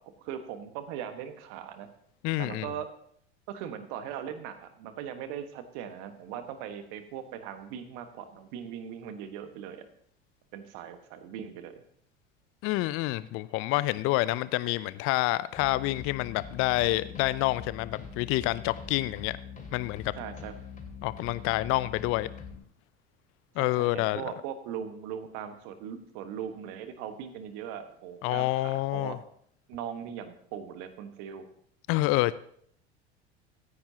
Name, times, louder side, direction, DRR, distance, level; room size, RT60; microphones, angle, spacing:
voice 1, 0.2-1.9 2.4-2.9 3.5-9.9 10.5-11.8 20.1-20.5 23.6-29.2 29.7-31.5, right 9 dB, 55° right, 9 dB, 1.5 m, -39 dB
voice 2, 2.2-2.7 12.6-19.4 19.7-20.1 21.0-22.3 23.6-24.2 28.2-29.2 31.9-32.3, left 18 dB, 45° left, 17 dB, 0.5 m, -28 dB
sound 1, 15.6-22.6, left 6 dB, 25° left, 2.6 m, -43 dB
16.0 x 10.0 x 2.9 m, 0.64 s
figure-of-eight pair, 75°, 33 cm